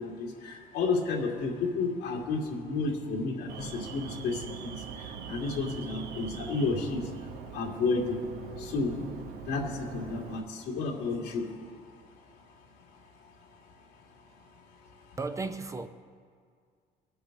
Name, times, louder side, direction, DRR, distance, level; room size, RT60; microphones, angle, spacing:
voice 1, 0.0-7.1 7.5-8.2 8.6-9.1 9.5-11.4, left 3 dB, 90° left, -1 dB, 2.4 m, -31 dB
Alarm, 3.5-10.4, right 7 dB, 75° right, 0.8 m, -42 dB
voice 2, 15.2-15.9, right 3 dB, 20° right, 9 dB, 0.5 m, -34 dB
23.0 x 7.8 x 4.0 m, 2.1 s
cardioid pair, 110°, 17 cm